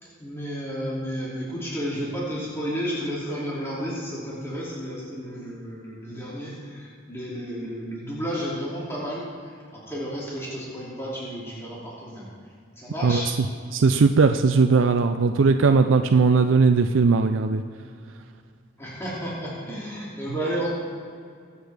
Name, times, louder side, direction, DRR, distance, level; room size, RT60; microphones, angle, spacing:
voice 1, 0.0-12.3 12.8-13.3 18.8-20.7, equal, 15° left, -7 dB, 2.7 m, -32 dB
voice 2, 13.7-17.6, right 4 dB, 85° right, 7 dB, 0.5 m, -18 dB
22.5 x 8.2 x 3.5 m, 2.2 s
head